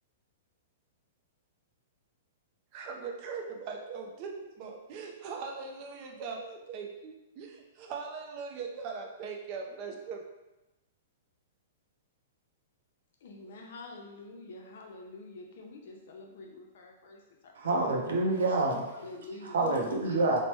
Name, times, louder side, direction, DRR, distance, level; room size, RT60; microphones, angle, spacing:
voice 1, 2.7-10.2, right 5 dB, 35° right, 2 dB, 0.4 m, -40 dB
voice 2, 13.2-17.8 18.9-19.8 20.0-20.2, left 3 dB, 65° left, 1 dB, 0.6 m, -46 dB
voice 3, 17.6-18.8 19.4-20.4, right 2 dB, 80° right, 1 dB, 0.6 m, -27 dB
3.1 x 2.1 x 3.0 m, 1.0 s
hypercardioid pair, 155°, 0 cm